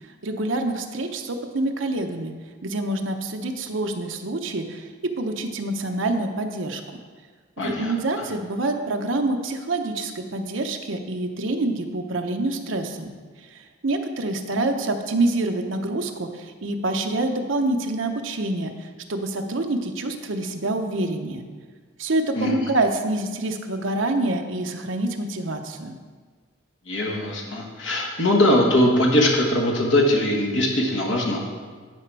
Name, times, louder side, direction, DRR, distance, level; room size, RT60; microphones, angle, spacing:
voice 1, 0.2-2.3 2.6-4.9 5.2-6.8 7.6-13.1 13.5-21.4 22.0-25.9, right 2 dB, 70° right, 5 dB, 0.8 m, -26 dB
voice 2, 7.6-7.9 22.4-22.5 26.9-31.4, left 1 dB, 60° left, -1 dB, 1.4 m, -21 dB
10.5 x 5.1 x 4.7 m, 1.5 s
head